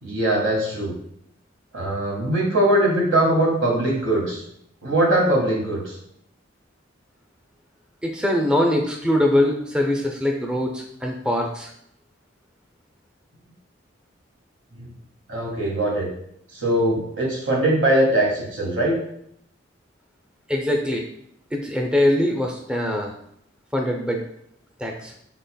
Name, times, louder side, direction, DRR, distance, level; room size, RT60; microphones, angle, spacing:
voice 1, 0.0-0.9 1.7-4.4 4.8-6.0 14.8-14.9 15.3-16.1 16.5-19.0, right 1 dB, 85° right, -3 dB, 1.7 m, -21 dB
voice 2, 8.0-11.7 20.5-21.1 21.5-23.1 23.7-24.2 24.8-25.1, left 1 dB, 5° right, 1 dB, 0.4 m, -22 dB
5.7 x 4.0 x 2.2 m, 0.71 s
head